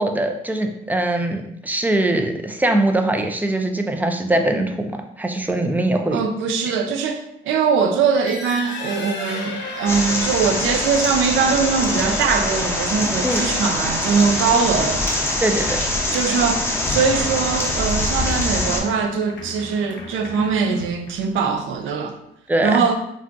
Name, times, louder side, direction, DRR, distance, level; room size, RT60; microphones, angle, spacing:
voice 1, 0.0-6.2 13.2-13.4 15.4-15.8 22.5-22.9, right 1 dB, 10° right, 5 dB, 0.3 m, -22 dB
voice 2, 6.1-15.1 16.1-22.1 22.6-22.9, right 5 dB, 80° right, 5 dB, 0.5 m, -21 dB
sound 1, 8.0-21.4, left 3 dB, 65° left, 0.7 m, -36 dB
sound 2, 9.9-18.8, left 1 dB, 10° left, 0.7 m, -23 dB
2.4 x 2.3 x 3.7 m, 0.77 s
cardioid pair, 90°, 20 cm